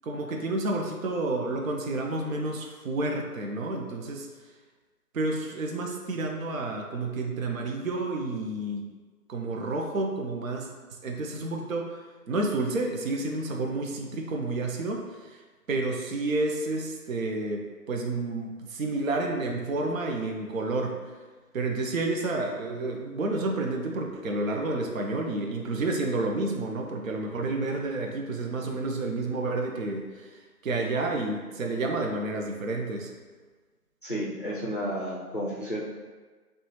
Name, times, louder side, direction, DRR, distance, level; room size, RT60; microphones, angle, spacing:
voice 1, 0.0-4.3 5.1-8.8 9.3-15.4 15.7-21.1 21.5-33.1, right 2 dB, 60° right, 1 dB, 0.6 m, -30 dB
voice 2, 34.0-35.8, equal, 35° left, -6 dB, 0.4 m, -32 dB
4.8 x 2.4 x 3.0 m, 1.4 s
figure-of-eight pair, 155°, 47 cm